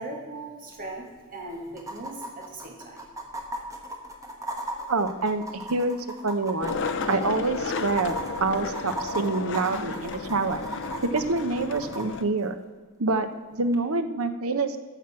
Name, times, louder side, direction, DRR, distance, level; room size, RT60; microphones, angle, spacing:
voice 1, 0.0-3.1, right 2 dB, 40° right, 0 dB, 2.0 m, -39 dB
sound 1, 0.7-0.8 1.0-1.1 1.8-12.1 13.7-13.8, right 1 dB, 15° right, 1.1 m, -37 dB
voice 2, 4.9-6.0 6.2-10.6 11.0-12.6 13.0-14.8, right 3 dB, 80° right, 9 dB, 0.8 m, -27 dB
Skateboard, 6.6-12.2, left 4 dB, 60° left, 0.6 m, -33 dB
13.5 x 6.0 x 5.9 m, 1.5 s
head